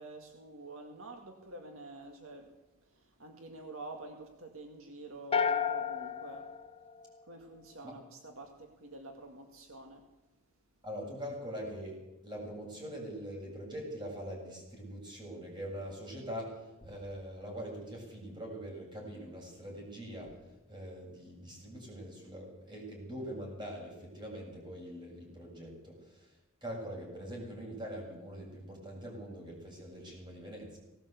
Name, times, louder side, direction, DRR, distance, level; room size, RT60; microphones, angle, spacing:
voice 1, 0.0-2.5 2.9-6.5 7.3-10.0, right 2 dB, 65° right, 4 dB, 2.2 m, -48 dB
sound 1, 5.3-7.6, left 6 dB, 25° left, 1.1 m, -33 dB
voice 2, 10.8-20.3 20.7-26.4 26.6-30.8, equal, 20° right, -1 dB, 7.7 m, -43 dB
19.0 x 18.0 x 8.3 m, 1.0 s
head